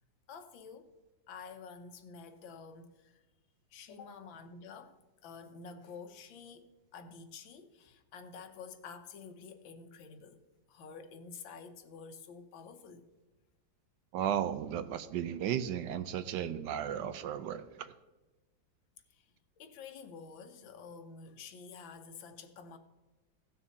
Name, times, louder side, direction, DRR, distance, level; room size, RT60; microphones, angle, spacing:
voice 1, 0.3-0.9 1.3-3.2 3.7-10.4 10.7-13.1 19.1-22.8, left 5 dB, 90° left, 1.7 m, -49 dB
voice 2, 14.1-17.9, right 9 dB, 75° right, 1.2 m, -35 dB
17.0 x 6.2 x 4.2 m
omnidirectional pair, 2.0 m